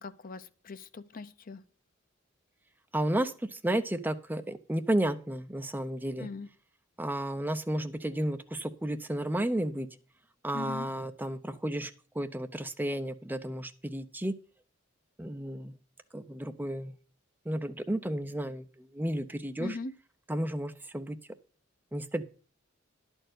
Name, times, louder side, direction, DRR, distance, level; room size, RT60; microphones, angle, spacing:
voice 1, 0.0-1.6 6.2-6.5 10.5-10.9 19.6-19.9, left 3 dB, 45° left, 12 dB, 0.7 m, -40 dB
voice 2, 2.9-6.3 7.0-9.9 10.4-14.3 15.2-15.7 16.1-16.9 17.5-19.8 20.3-21.2 21.9-22.2, right 1 dB, 10° right, 8 dB, 0.6 m, -32 dB
11.0 x 4.5 x 7.9 m, 0.40 s
head